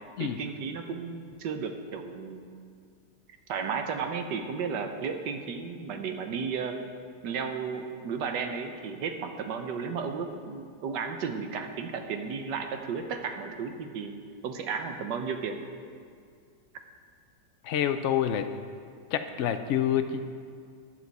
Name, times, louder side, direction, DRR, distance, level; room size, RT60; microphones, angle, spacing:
voice 1, 0.2-2.5 3.5-6.7 7.2-14.1 14.4-15.6, right 5 dB, 75° right, 6 dB, 1.5 m, -34 dB
voice 2, 17.6-18.5 19.1-20.3, left 10 dB, 80° left, 8 dB, 0.6 m, -27 dB
14.5 x 9.4 x 4.1 m, 2.2 s
omnidirectional pair, 1.9 m